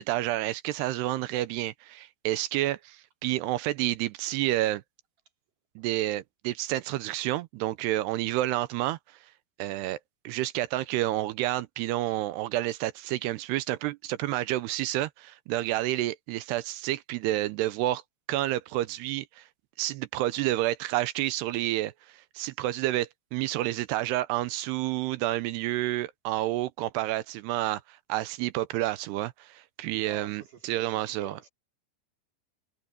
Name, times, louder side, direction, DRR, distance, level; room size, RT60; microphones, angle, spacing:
voice 1, 0.0-4.8 5.8-9.0 9.6-10.0 10.2-18.0 18.3-19.5 19.8-31.4, right 15 dB, 85° right, 2.7 m, -29 dB
voice 2, 30.0-31.5, right 4 dB, 50° right, 5.4 m, -50 dB
omnidirectional pair, 4.9 m